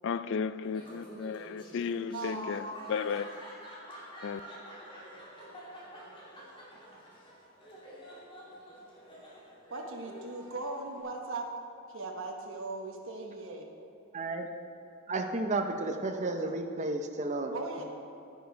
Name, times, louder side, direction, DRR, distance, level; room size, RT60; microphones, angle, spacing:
voice 1, 0.0-3.3 4.2-4.4, left 6 dB, 55° left, 0.3 m, -34 dB
Laughter, 0.6-11.0, equal, 25° left, 2.4 m, -48 dB
voice 2, 2.1-3.0 9.7-11.5 11.9-13.7 17.5-17.8, right 2 dB, 65° right, 1.1 m, -39 dB
voice 3, 14.1-14.5 15.1-17.5, right 2 dB, 35° right, 0.6 m, -32 dB
10.5 x 10.0 x 4.6 m
head